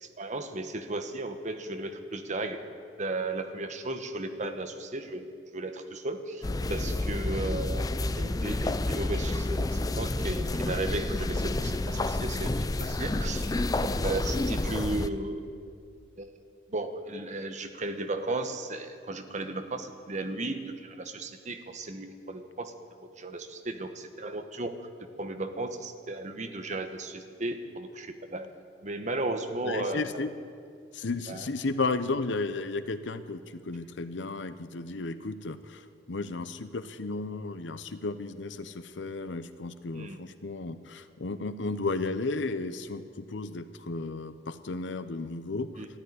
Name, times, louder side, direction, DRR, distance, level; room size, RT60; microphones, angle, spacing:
voice 1, 0.0-2.6 3.0-13.5 13.8-15.4 16.2-16.3 16.7-22.7 23.2-24.8 25.2-28.5 28.8-30.2 31.3-31.5 39.9-40.2 45.8-45.9, right 2 dB, 40° right, 7 dB, 1.0 m, -35 dB
sound 1, 6.4-15.1, left 2 dB, 20° left, 0.4 m, -29 dB
voice 2, 29.6-30.3 30.9-45.7, left 3 dB, 80° left, 12 dB, 0.8 m, -34 dB
13.0 x 11.0 x 9.8 m, 2.3 s
head